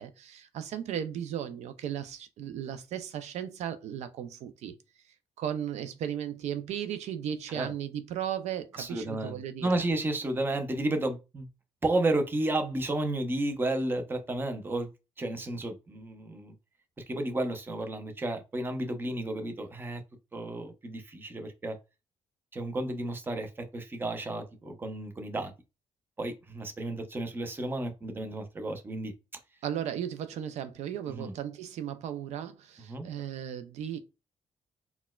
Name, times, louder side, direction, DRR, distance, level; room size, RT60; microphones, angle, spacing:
voice 1, 0.0-4.7 5.1-9.8 29.6-34.0, right 9 dB, 70° right, 0.4 m, -36 dB
voice 2, 8.7-11.5 11.8-14.9 15.2-16.5 17.1-20.0 20.3-21.8 22.5-25.5 26.2-29.1 31.1-31.3 32.8-33.1, right 2 dB, 20° right, 0.6 m, -32 dB
4.1 x 2.1 x 2.2 m
cardioid pair, 120°, 12 cm